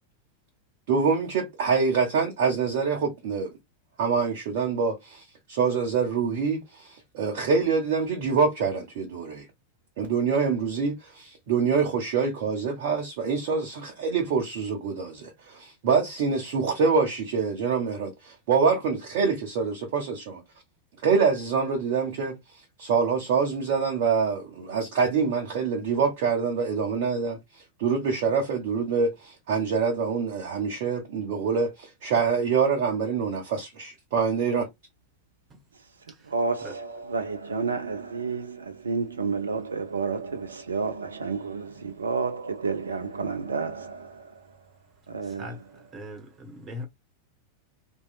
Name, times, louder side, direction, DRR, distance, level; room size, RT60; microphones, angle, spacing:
voice 1, 0.9-3.5 4.0-9.5 10.0-20.4 21.0-34.7, right 5 dB, 50° right, 0.9 m, -25 dB
voice 2, 36.3-44.3 45.1-45.6, right 4 dB, 70° right, 0.6 m, -30 dB
voice 3, 45.9-46.8, left 1 dB, 25° right, 1.3 m, -38 dB
3.1 x 2.6 x 2.3 m
figure-of-eight pair, 90°, 0 cm